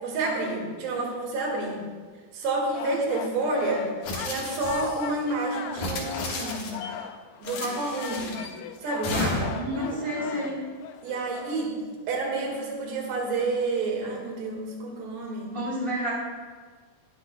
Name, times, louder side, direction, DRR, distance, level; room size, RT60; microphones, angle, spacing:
voice 1, 0.0-1.8 2.3-6.7 7.4-8.4 8.8-10.3 11.0-11.7 12.1-15.5, right 2 dB, 85° right, 0 dB, 3.7 m, -29 dB
sound 1, 2.7-11.7, left 9 dB, 85° left, 2.6 m, -40 dB
sound 2, 4.0-5.1 5.7-6.9 7.4-8.5 9.0-9.7, left 2 dB, 60° left, 2.6 m, -33 dB
voice 2, 9.5-10.6 15.5-16.1, equal, 10° left, -6 dB, 2.2 m, -30 dB
19.5 x 8.2 x 2.2 m, 1.5 s
omnidirectional pair, 4.7 m